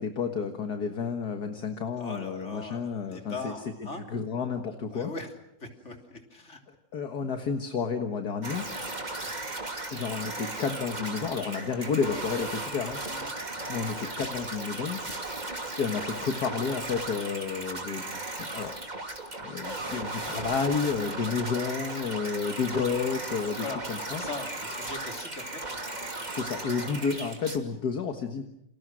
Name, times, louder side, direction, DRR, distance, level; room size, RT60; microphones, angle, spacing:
voice 1, 0.0-5.1 6.7-8.7 9.9-13.0 13.7-15.0 15.8-18.7 19.4-24.2 26.3-28.4, left 5 dB, 60° left, 6 dB, 2.1 m, -31 dB
voice 2, 2.0-4.0 4.9-5.3 5.6-6.6 13.1-13.3 23.6-23.8 24.2-26.4 26.7-27.1, left 3 dB, 40° left, 4 dB, 3.5 m, -40 dB
sound 1, 8.4-27.6, right 2 dB, 25° right, 2.7 m, -36 dB
29.5 x 27.0 x 6.3 m, 0.81 s
omnidirectional pair, 1.9 m